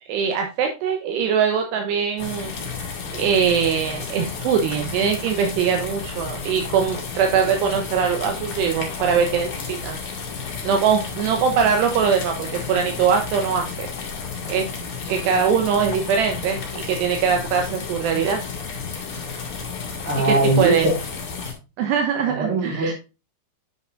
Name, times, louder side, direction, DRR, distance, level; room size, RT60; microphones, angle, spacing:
voice 1, 0.1-2.5 3.1-10.0 10.6-13.9 14.5-14.7 15.1-18.4 20.3-20.9 21.8-22.9, right 7 dB, 75° right, 4 dB, 2.9 m, -22 dB
sound 1, 2.2-21.5, left 5 dB, 45° left, 1.9 m, -32 dB
voice 2, 20.0-21.0 22.3-22.9, right 2 dB, 35° right, -2 dB, 3.1 m, -21 dB
9.5 x 5.8 x 2.5 m, 0.29 s
omnidirectional pair, 5.1 m